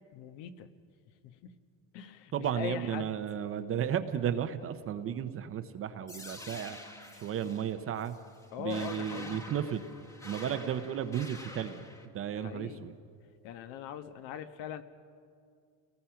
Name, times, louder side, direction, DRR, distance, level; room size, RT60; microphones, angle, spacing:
voice 1, 0.1-0.7 1.2-1.6 1.9-3.1 8.5-9.5 12.3-12.8 13.4-14.8, left 9 dB, 65° left, 10 dB, 1.3 m, -41 dB
voice 2, 2.3-6.8 7.2-8.1 8.6-9.9 10.2-11.9 12.1-12.9, right 9 dB, 30° right, 10 dB, 0.7 m, -34 dB
sound 1, 6.1-12.1, left 1 dB, 5° left, 1.2 m, -47 dB
29.5 x 19.0 x 5.8 m, 2.3 s
cardioid pair, 160°, 46 cm